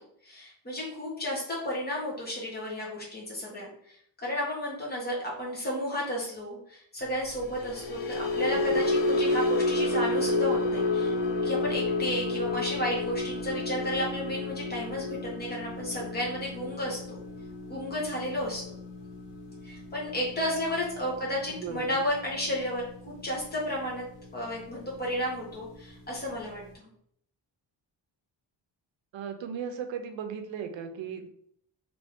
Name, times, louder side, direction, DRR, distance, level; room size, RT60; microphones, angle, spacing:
voice 1, 0.2-11.1 11.4-17.2 17.7-18.8 19.6-24.0 24.3-26.9, equal, 20° left, -4 dB, 1.1 m, -33 dB
sound 1, 7.4-23.8 24.1-24.4 24.8-25.0, left 2 dB, 75° left, 0.7 m, -31 dB
voice 2, 21.5-22.0 29.1-31.3, right 7 dB, 85° right, 7 dB, 0.6 m, -37 dB
3.0 x 2.6 x 3.5 m, 0.68 s
wide cardioid pair, 165°, 44 cm